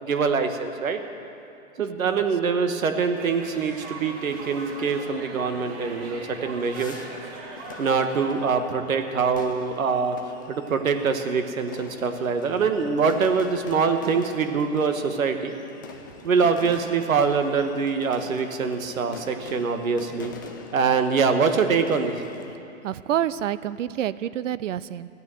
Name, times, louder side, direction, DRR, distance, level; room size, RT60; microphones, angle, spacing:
voice 1, 0.0-1.0 1.8-7.0 7.8-10.2 10.5-15.5 16.2-20.3 20.7-22.2, right 5 dB, 85° right, 7 dB, 1.6 m, -24 dB
sound 1, 3.1-8.3, right 2 dB, 45° right, 3.8 m, -40 dB
sound 2, 6.7-22.6, left 5 dB, 15° left, 0.3 m, -44 dB
voice 2, 22.8-25.1, right 11 dB, 70° right, 17 dB, 0.6 m, -28 dB
15.0 x 9.5 x 7.8 m, 2.8 s
hypercardioid pair, 150°, 40 cm